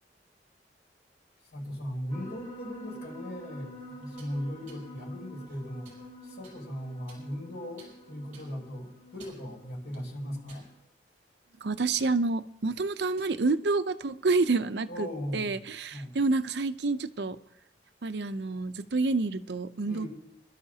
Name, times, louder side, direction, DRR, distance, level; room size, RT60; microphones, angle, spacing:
voice 1, 1.5-5.9 6.2-10.7 14.9-15.6 15.9-16.1 19.8-20.1, equal, 65° left, -2 dB, 7.6 m, -38 dB
sound 1, 2.1-10.8, equal, 25° left, 3.2 m, -48 dB
sound 2, 4.0-4.3 4.7-4.8 5.4-6.0 6.4-6.6 7.1-7.5 7.8-7.9 8.3-8.5 9.0-9.5 9.9-10.0 10.5-11.0 11.4-11.6 12.0-12.1 12.9-13.4, right 4 dB, 45° right, 6.3 m, -54 dB
voice 2, 11.6-15.1 15.3-17.4 18.0-20.1, right 3 dB, 70° right, 12 dB, 0.6 m, -28 dB
27.0 x 12.5 x 2.8 m, 0.83 s
head